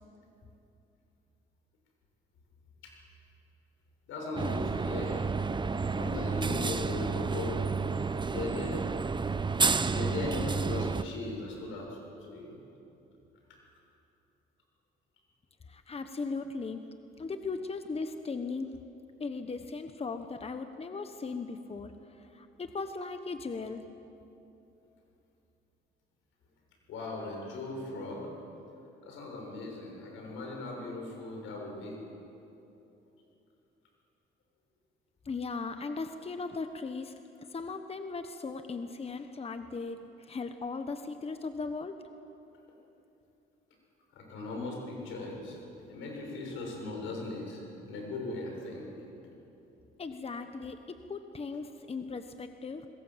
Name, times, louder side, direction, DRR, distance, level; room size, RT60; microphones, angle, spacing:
voice 1, 4.1-5.2 5.9-7.6 8.3-8.9 9.9-12.6 26.9-28.2 29.0-32.0 44.1-48.9, left 2 dB, 85° left, 0 dB, 7.1 m, -38 dB
sound 1, 4.4-11.0, right 4 dB, 25° right, 0.8 m, -30 dB
voice 2, 15.7-16.8 17.2-18.7 19.2-21.9 22.2-23.8 35.2-37.1 37.5-41.9 50.0-52.9, left 4 dB, 30° left, 8 dB, 1.2 m, -38 dB
26.0 x 20.5 x 7.6 m, 2.9 s
cardioid pair, 90°, 20 cm